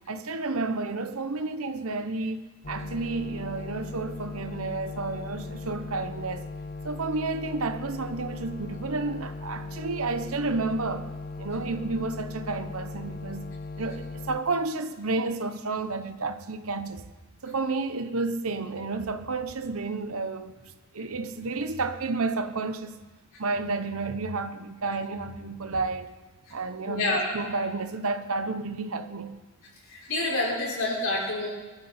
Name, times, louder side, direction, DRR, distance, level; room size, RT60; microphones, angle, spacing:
voice 1, 0.1-6.5 6.8-11.1 11.4-13.5 13.8-17.0 17.4-23.0 23.4-26.1 26.5-29.3, right 3 dB, 70° right, 1.0 m, -31 dB
sound 1, 2.6-14.4, left 3 dB, 40° left, 0.7 m, -38 dB
voice 2, 26.8-27.3 29.9-31.5, left 2 dB, 65° left, 5.2 m, -27 dB
23.0 x 13.0 x 4.4 m
head